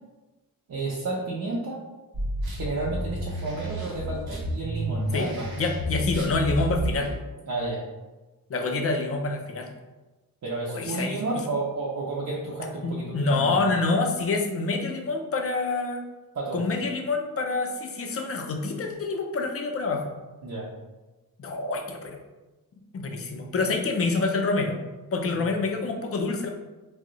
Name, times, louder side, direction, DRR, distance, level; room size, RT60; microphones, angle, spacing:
voice 1, 0.7-1.8 2.5-5.5 7.5-7.8 10.4-13.7 16.3-16.6 20.4-20.7 25.3-25.4, right 2 dB, 55° right, -5 dB, 0.5 m, -31 dB
sound 1, 2.1-7.1, equal, 90° right, 0.8 m, -31 dB
voice 2, 5.6-7.1 8.5-9.7 10.7-11.2 12.8-16.0 16.5-20.1 21.4-22.2 22.9-24.8 25.1-26.5, left 3 dB, 40° left, 3 dB, 0.4 m, -27 dB
2.6 x 2.0 x 3.8 m, 1.1 s
wide cardioid pair, 130°, 35 cm